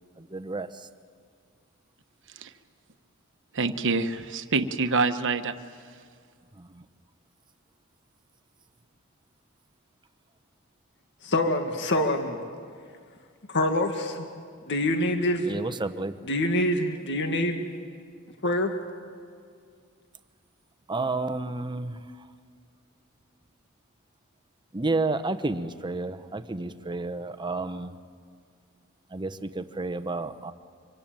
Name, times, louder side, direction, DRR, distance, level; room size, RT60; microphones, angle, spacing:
voice 1, 0.3-0.7 15.5-16.1 20.9-21.9 24.7-27.9 29.1-30.5, right 3 dB, 20° right, 11 dB, 0.9 m, -30 dB
voice 2, 3.5-5.5, right 4 dB, 60° right, 9 dB, 1.2 m, -26 dB
voice 3, 11.2-12.4 13.5-14.3 14.7-15.5 16.2-17.7 18.4-18.7, left 1 dB, 55° left, 5 dB, 1.9 m, -25 dB
25.0 x 25.0 x 9.0 m, 2.1 s
head